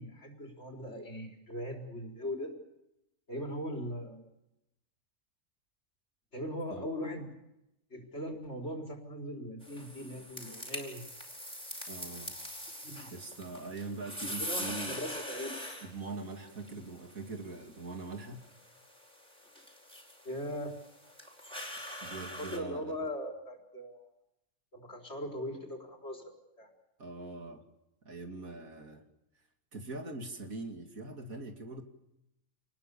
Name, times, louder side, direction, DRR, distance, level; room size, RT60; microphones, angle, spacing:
voice 1, 0.0-2.5 3.3-4.3 6.3-7.3 7.9-11.0 12.8-13.1 14.4-15.6 19.5-19.6 20.2-20.8 22.4-24.1 24.7-26.7, equal, 50° left, 2 dB, 4.7 m, -40 dB
sound 1, 9.6-22.6, equal, 5° left, 4.8 m, -43 dB
voice 2, 11.9-12.3 13.1-15.0 15.8-18.4 22.0-23.1 27.0-27.6 28.0-29.0 29.7-31.8, right 3 dB, 90° right, 5 dB, 3.1 m, -42 dB
28.0 x 20.5 x 7.0 m, 0.88 s
omnidirectional pair, 1.4 m